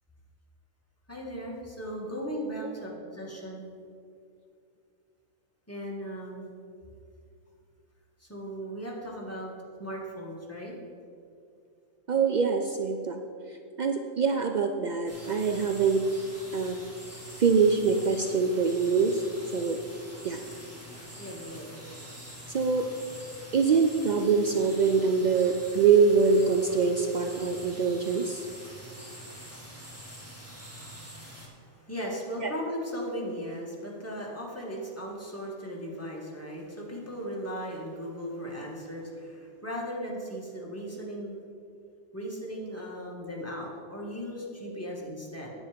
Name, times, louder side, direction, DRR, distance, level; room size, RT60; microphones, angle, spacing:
voice 1, 1.1-3.7 5.7-6.5 8.2-9.5 9.8-10.7 21.2-21.7 31.3-41.4 42.1-45.5, equal, 10° left, -3 dB, 1.7 m, -37 dB
voice 2, 12.1-13.2 13.8-16.0 16.5-16.8 17.4-19.1 19.5-19.8 20.2-20.4 22.5-22.9 23.5-28.4 32.4-32.5, right 5 dB, 75° right, 5 dB, 0.4 m, -24 dB
sound 1, 15.1-31.5, equal, 10° right, 1.6 m, -45 dB
9.4 x 8.5 x 5.1 m, 2.4 s
omnidirectional pair, 1.4 m